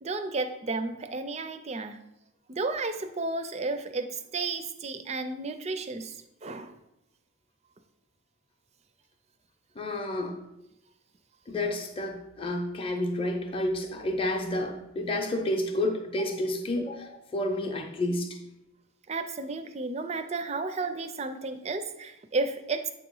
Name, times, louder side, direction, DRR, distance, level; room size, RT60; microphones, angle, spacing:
voice 1, 0.0-2.0 2.5-6.7 16.2-16.3 19.1-22.9, right 3 dB, 30° right, 9 dB, 0.4 m, -33 dB
voice 2, 9.8-10.4 11.5-18.4, left 1 dB, 25° left, 3 dB, 0.6 m, -30 dB
8.0 x 2.9 x 5.4 m, 0.87 s
head